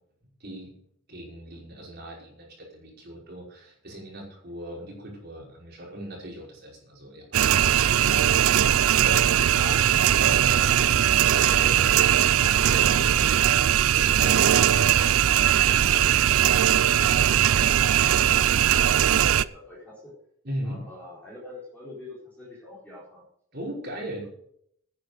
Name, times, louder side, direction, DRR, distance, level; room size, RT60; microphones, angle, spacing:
voice 1, 1.1-9.2 9.5-9.8 10.1-11.9 12.4-13.5 13.9-15.2 20.4-20.8 23.5-24.2, equal, 50° right, -2 dB, 5.3 m, -38 dB
sound 1, 7.3-19.4, right 10 dB, 80° right, 0.5 m, -20 dB
voice 2, 17.1-20.1 20.6-23.2 23.9-24.3, left 2 dB, 5° left, -7 dB, 4.7 m, -45 dB
10.5 x 10.0 x 6.6 m, 0.67 s
head